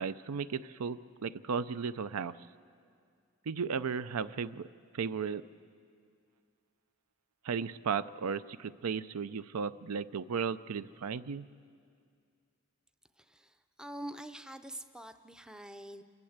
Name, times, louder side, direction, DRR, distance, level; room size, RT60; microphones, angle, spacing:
voice 1, 0.0-2.3 3.5-4.7 4.9-5.4 7.4-11.5, right 6 dB, 90° right, 15 dB, 0.5 m, -35 dB
voice 2, 13.2-16.0, right 1 dB, 5° right, 9 dB, 0.5 m, -45 dB
28.5 x 12.0 x 8.0 m, 2.3 s
head